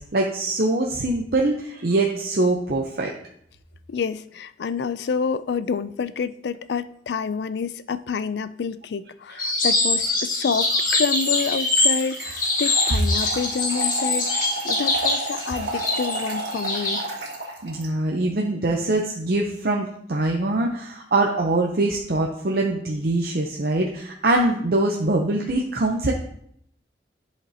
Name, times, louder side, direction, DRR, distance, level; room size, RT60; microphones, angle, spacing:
voice 1, 0.0-3.1 17.6-26.1, right 2 dB, 55° right, 0 dB, 0.6 m, -23 dB
voice 2, 3.9-14.3 14.6-17.1, left 5 dB, 70° left, 14 dB, 0.4 m, -28 dB
sound 1, 9.4-17.0, left 2 dB, 50° left, 1.7 m, -24 dB
Trickle dribble / Fill (with liquid), 10.5-17.9, right 2 dB, 80° right, 1.8 m, -32 dB
10.5 x 5.0 x 2.8 m, 0.71 s
head